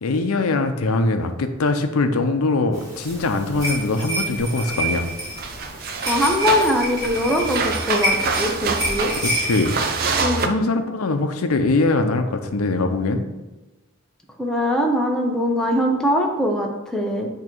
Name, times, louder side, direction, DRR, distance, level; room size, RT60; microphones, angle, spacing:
voice 1, 0.0-5.1 9.2-13.2, left 3 dB, 90° left, 7 dB, 0.6 m, -22 dB
sound 1, 2.7-10.2, right 1 dB, 15° right, 1.8 m, -28 dB
sound 2, 4.9-5.1 5.4-10.5, right 4 dB, 45° right, 0.5 m, -26 dB
voice 2, 6.1-9.1 10.2-10.5 14.4-17.3, equal, 5° left, 0 dB, 0.6 m, -22 dB
8.3 x 2.9 x 4.4 m, 1.1 s
head